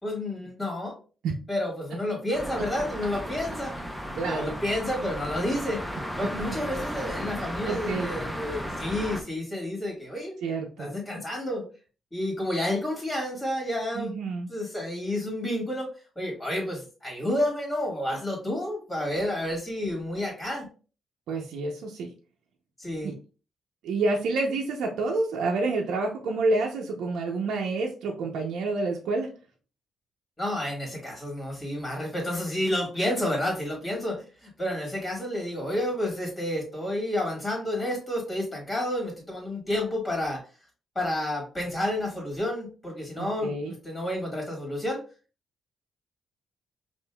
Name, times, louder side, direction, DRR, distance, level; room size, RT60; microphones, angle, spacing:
voice 1, 0.0-0.9 1.5-3.7 4.2-5.8 6.2-10.4 10.8-11.7 12.1-14.2 14.5-20.7 22.8-23.1 30.4-40.4 40.9-45.0, left 1 dB, 15° left, -1 dB, 1.7 m, -30 dB
sound 1, 2.3-9.2, equal, ahead, 0.6 m, -35 dB
voice 2, 4.1-4.5 7.7-8.1 10.4-10.9 14.0-14.5 21.3-22.1 23.0-23.1 23.8-29.3 43.2-43.7, right 3 dB, 90° right, 0 dB, 0.6 m, -28 dB
5.4 x 2.5 x 2.2 m, 0.36 s
cardioid pair, 120°, 0 cm